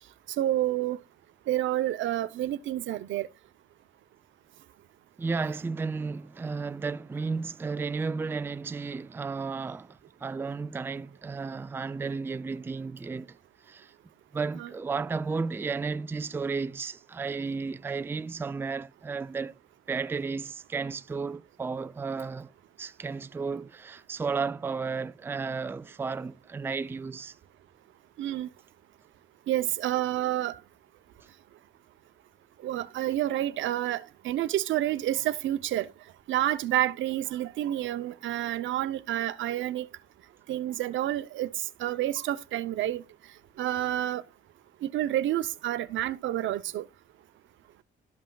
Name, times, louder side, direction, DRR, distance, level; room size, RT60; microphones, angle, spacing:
voice 1, 0.4-1.0 1.5-3.3 28.2-28.5 29.5-30.5 32.6-35.9 36.3-39.9 40.5-41.5 41.8-43.0 43.6-44.2 44.8-46.8, right 13 dB, 75° right, 0.6 m, -29 dB
voice 2, 5.2-13.4 13.7-13.9 14.3-19.6 19.9-22.5 22.8-27.3, right 4 dB, 10° right, 0.3 m, -33 dB
13.0 x 5.5 x 2.3 m
cardioid pair, 90°, 20 cm